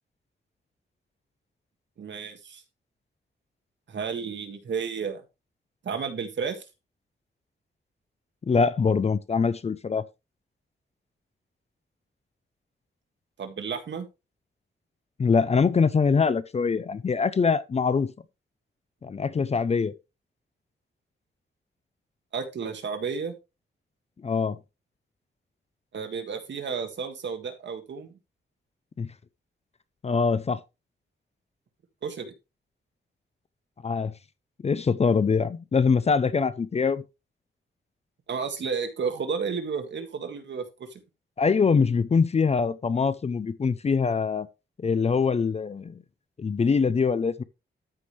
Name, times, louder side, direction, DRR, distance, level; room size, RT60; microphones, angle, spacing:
voice 1, 2.0-2.6 3.9-5.2 5.8-6.6 13.4-14.1 22.3-23.3 25.9-28.1 32.0-32.3 38.3-41.0, right 5 dB, 65° right, 1.8 m, -32 dB
voice 2, 8.5-10.0 15.2-18.1 19.0-19.9 24.2-24.6 29.0-29.1 30.0-30.6 33.8-34.1 34.6-37.0 41.4-44.5 44.8-46.0 46.4-47.4, left 5 dB, 30° left, 0.5 m, -23 dB
13.0 x 5.2 x 3.2 m
wide cardioid pair, 135°, 20 cm